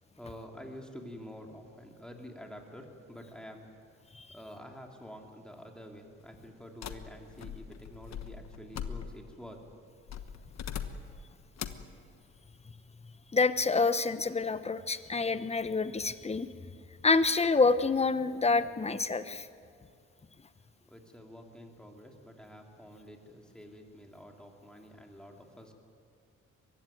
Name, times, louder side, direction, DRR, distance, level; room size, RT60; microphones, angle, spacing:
voice 1, 0.1-3.7 4.3-9.8 20.8-25.7, equal, 5° left, 1 dB, 3.1 m, -48 dB
sound 1, 6.8-9.4 10.1-11.2 11.6-11.9, left 8 dB, 60° left, 1.3 m, -41 dB
voice 2, 13.3-16.5 17.0-19.5, left 4 dB, 20° left, 12 dB, 1.0 m, -27 dB
22.5 x 16.0 x 9.3 m, 2.5 s
cardioid pair, 90°, 30 cm